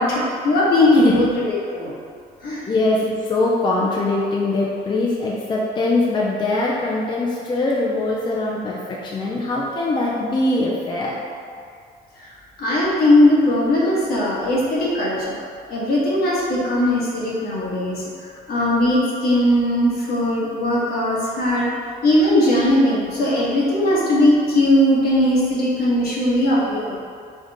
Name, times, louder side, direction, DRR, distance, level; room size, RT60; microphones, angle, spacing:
voice 1, 0.0-1.9 2.4-2.6 12.6-15.4 15.7-18.0 18.5-21.7 22.0-26.9, left 1 dB, 65° left, -6 dB, 1.4 m, -19 dB
voice 2, 2.7-11.1, left 2 dB, 30° left, -4 dB, 0.5 m, -22 dB
5.2 x 2.4 x 4.1 m, 2.3 s
cardioid pair, 110°, 17 cm